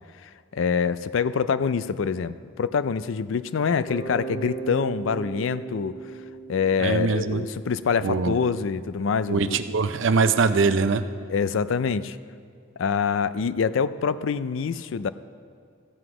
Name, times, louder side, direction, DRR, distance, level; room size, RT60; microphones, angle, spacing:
voice 1, 0.2-5.9 6.5-9.6 11.3-12.2 12.8-15.1, left 6 dB, 75° left, 14 dB, 0.4 m, -25 dB
Bass guitar, 3.9-7.8, right 4 dB, 15° left, 3.0 m, -37 dB
voice 2, 6.8-7.5 8.0-8.3 9.3-11.1, right 4 dB, 70° right, 10 dB, 0.5 m, -22 dB
15.0 x 8.0 x 4.8 m, 2.3 s
head